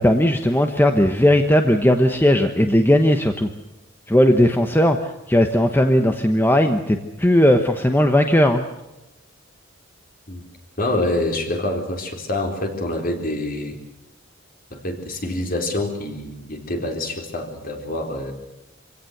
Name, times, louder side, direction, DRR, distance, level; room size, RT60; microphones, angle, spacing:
voice 1, 0.0-3.5 4.1-8.6, left 1 dB, 10° left, 5 dB, 1.1 m, -17 dB
voice 2, 10.8-13.8 14.7-18.3, left 1 dB, 45° left, 3 dB, 4.0 m, -26 dB
25.5 x 17.0 x 8.0 m, 0.95 s
head